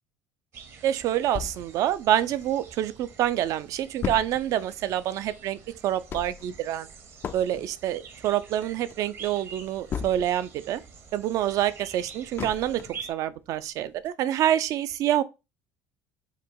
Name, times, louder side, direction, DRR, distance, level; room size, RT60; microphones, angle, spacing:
sound 1, 0.5-13.1, right 6 dB, 45° right, 0.8 m, -47 dB
voice 1, 0.8-5.6 5.8-6.9 7.3-10.8 11.1-12.8 13.1-15.2, right 12 dB, 60° right, 0.4 m, -27 dB
sound 2, 1.3-2.9 3.3-3.4 3.5-10.6 10.9-13.1 13.5-13.6 14.0-14.1, left 7 dB, 35° left, 0.3 m, -37 dB
4.8 x 2.3 x 4.5 m
supercardioid pair, 110°, 6 cm